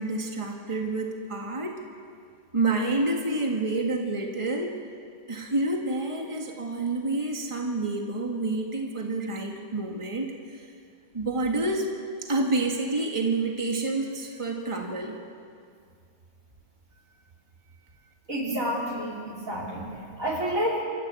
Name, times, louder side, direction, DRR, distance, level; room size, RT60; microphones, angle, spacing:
voice 1, 0.0-1.8 2.5-4.8 5.3-10.7 11.1-11.9 12.2-15.2, right 2 dB, 20° right, 1 dB, 2.0 m, -28 dB
voice 2, 18.3-19.8 20.2-20.8, equal, 80° right, -3 dB, 4.7 m, -29 dB
27.0 x 15.0 x 8.4 m, 2.2 s
omnidirectional pair, 1.4 m